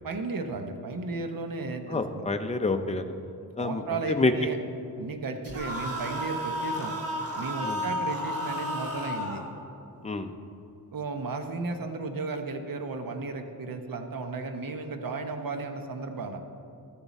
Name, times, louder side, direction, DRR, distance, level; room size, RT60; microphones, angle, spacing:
voice 1, 0.0-2.0 3.6-4.6 5.0-6.9 7.3-9.4 10.9-16.4, right 3 dB, 60° right, 6 dB, 0.9 m, -34 dB
voice 2, 1.9-3.1 3.6-4.3 7.6-7.8 10.0-10.3, left 3 dB, 15° left, 7 dB, 0.5 m, -28 dB
sound 1, 5.4-9.5, equal, 35° right, 1.3 m, -32 dB
13.0 x 7.2 x 4.1 m, 2.7 s
wide cardioid pair, 135°, 39 cm